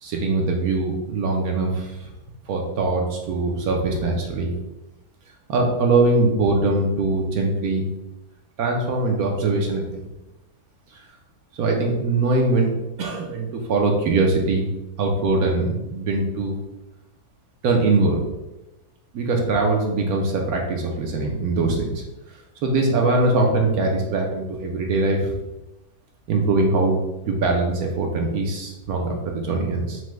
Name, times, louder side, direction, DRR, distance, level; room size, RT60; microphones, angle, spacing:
voice 1, 0.0-2.1 2.5-4.5 5.5-7.9 8.6-10.1 11.6-14.7 15.0-16.6 17.6-18.2 19.1-22.0 22.6-25.4 26.3-27.0 27.3-30.0, right 3 dB, 70° right, 1 dB, 1.1 m, -22 dB
5.8 x 2.1 x 3.1 m, 0.96 s
omnidirectional pair, 1.7 m